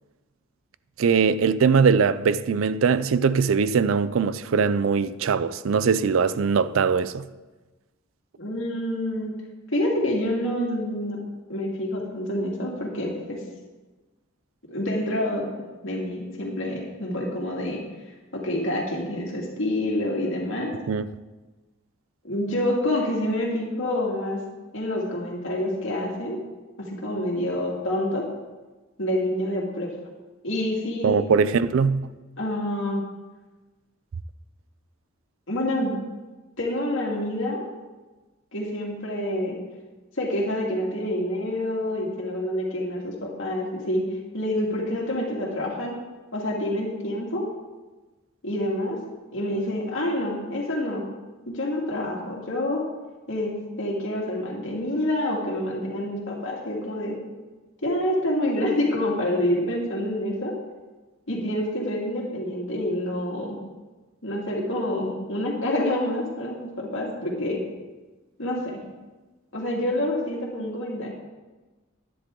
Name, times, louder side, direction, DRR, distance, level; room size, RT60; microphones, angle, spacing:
voice 1, 1.0-7.2 20.9-21.1 31.0-32.1, right 5 dB, 70° right, 0.4 m, -21 dB
voice 2, 8.4-9.3 9.7-11.2 11.5-13.4 14.7-15.4 15.8-17.8 18.3-20.7 22.2-24.4 24.7-26.4 26.8-28.3 29.0-29.9 30.4-31.2 32.4-33.0 35.5-35.9 36.6-37.6 38.5-39.6 40.2-44.0 44.3-46.0 46.3-47.5 48.4-49.0 49.3-51.0 51.5-52.8 53.3-57.2 57.8-60.5 61.3-63.6 64.2-67.6 68.4-68.8 69.5-71.1, left 1 dB, 65° left, 2.4 m, -27 dB
11.0 x 10.0 x 3.8 m
head